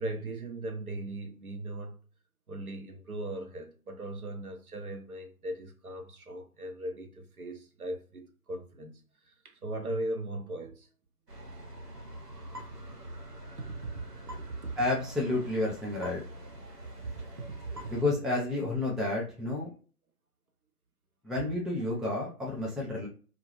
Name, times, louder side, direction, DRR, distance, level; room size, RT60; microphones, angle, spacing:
voice 1, 0.0-2.0 2.5-10.9 13.6-14.8 16.6-16.7 17.0-18.0, right 1 dB, 70° right, 0.7 m, -39 dB
sound 1, 11.3-18.0, right 1 dB, 85° right, 1.0 m, -45 dB
voice 2, 14.8-16.2 17.9-19.7 21.2-23.1, left 2 dB, ahead, 0.3 m, -30 dB
2.2 x 2.1 x 3.0 m
figure-of-eight pair, 155°, 46 cm